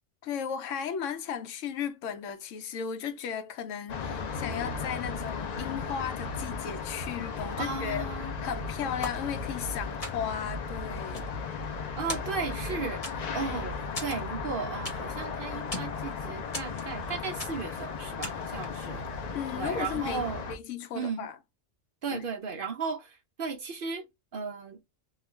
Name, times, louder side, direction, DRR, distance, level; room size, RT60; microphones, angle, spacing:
voice 1, 0.2-11.3 19.3-21.4 22.1-22.2, left 7 dB, 85° left, 0.9 m, -35 dB
sound 1, 3.9-20.6, left 5 dB, 65° left, 0.4 m, -36 dB
voice 2, 7.6-8.3 12.0-13.0 13.3-19.0 19.6-20.4 20.9-21.3 22.0-24.0 24.3-24.8, right 5 dB, 60° right, 0.6 m, -35 dB
sound 2, 9.0-9.7 10.0-10.5 10.9-11.8 12.1-12.7 13.0-13.5 13.9-15.2 15.5-16.0 16.5-17.1 17.4-17.8 18.2-18.6, left 2 dB, 30° left, 0.9 m, -39 dB
2.4 x 2.2 x 3.0 m
omnidirectional pair, 1.3 m